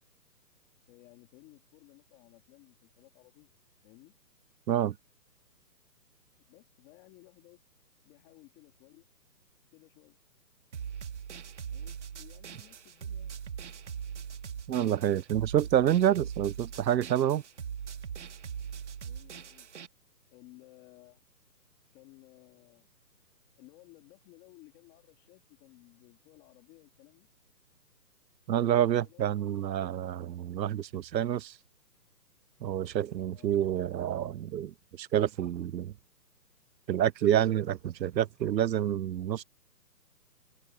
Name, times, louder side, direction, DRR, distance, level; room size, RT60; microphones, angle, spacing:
voice 1, 0.9-3.5 3.8-4.1 6.5-7.6 8.0-9.1 9.7-10.2 11.6-13.4 19.0-19.7 20.3-21.2 21.9-22.9 23.6-27.3 28.9-29.4 33.3-33.6, left 21 dB, 15° left, 2.8 m, -57 dB
sound 1, 10.7-19.9, right 7 dB, 45° right, 1.6 m, -41 dB
voice 2, 14.7-17.4 28.5-31.6 32.6-35.9 36.9-39.4, right 11 dB, 90° right, 0.7 m, -28 dB
hypercardioid pair, 170°, 50 cm